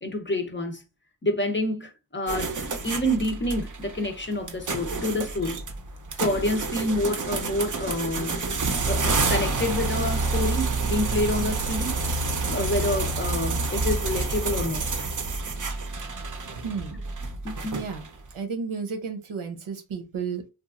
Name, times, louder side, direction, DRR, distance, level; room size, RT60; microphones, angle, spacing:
voice 1, 0.0-0.8 1.2-5.6 6.2-12.0 12.5-14.8 17.4-17.8, left 1 dB, 25° left, 0.6 m, -28 dB
sound 1, 2.3-18.2, right 3 dB, 40° right, 0.6 m, -28 dB
voice 2, 16.6-17.0 17.7-18.0 18.3-20.5, right 5 dB, 80° right, 0.8 m, -32 dB
2.9 x 2.4 x 2.4 m
wide cardioid pair, 60°, 47 cm